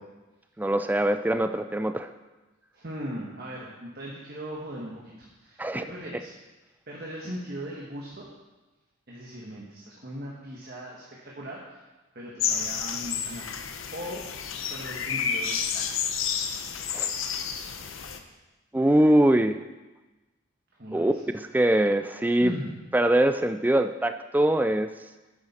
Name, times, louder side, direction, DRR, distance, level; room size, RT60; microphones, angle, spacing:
voice 1, 0.6-2.1 5.6-5.8 16.9-17.1 18.7-19.6 20.9-22.5 22.9-24.9, right 1 dB, 10° right, 9 dB, 0.3 m, -23 dB
voice 2, 2.7-6.3 6.9-8.3 9.1-11.9 12.1-14.2 14.7-15.9 20.8-21.2 22.4-22.7, equal, 50° right, -3 dB, 1.5 m, -39 dB
sound 1, 12.4-18.2, left 7 dB, 80° left, 0.8 m, -30 dB
10.5 x 8.9 x 4.3 m, 1.1 s
head